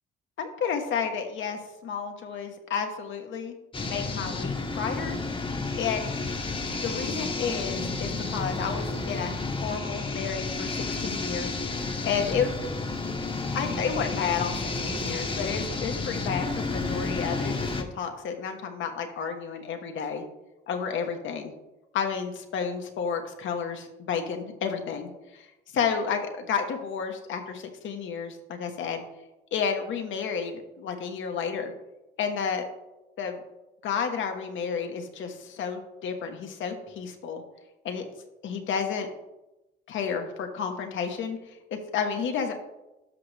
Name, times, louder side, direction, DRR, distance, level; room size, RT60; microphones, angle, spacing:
voice 1, 0.4-3.5 3.8-5.2 5.7-6.1 6.8-11.5 12.0-12.5 13.5-20.2 20.7-21.5 21.9-29.0 29.5-31.7 32.2-32.7 33.2-33.4 33.8-37.4 37.8-38.1 38.4-39.1 39.9-42.5, left 6 dB, 75° left, 4 dB, 1.3 m, -31 dB
sound 1, 3.7-17.8, left 3 dB, 25° left, 1.0 m, -31 dB
12.5 x 5.3 x 3.4 m, 0.97 s
cardioid pair, 90°, 20 cm